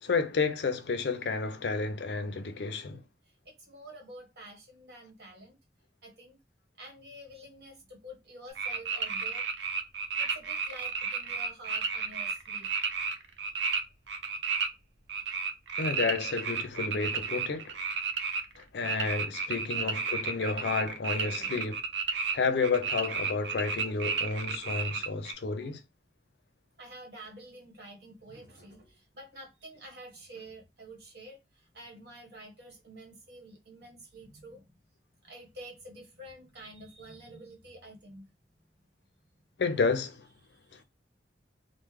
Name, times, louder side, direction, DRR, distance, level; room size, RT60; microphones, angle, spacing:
voice 1, 0.0-3.0 15.8-17.8 18.6-21.8 22.3-25.8 39.6-40.3 40.7-40.8, left 4 dB, 70° left, 0.5 m, -31 dB
voice 2, 3.4-5.6 6.0-6.4 6.8-9.4 10.2-12.7 21.4-21.6 26.8-34.6 35.2-38.3 40.4-40.8, right 1 dB, 65° right, 1.3 m, -49 dB
sound 1, 8.6-13.8 14.1-14.7 15.1-22.3 22.6-25.3, right 5 dB, 85° right, 0.6 m, -32 dB
3.2 x 2.1 x 3.3 m
head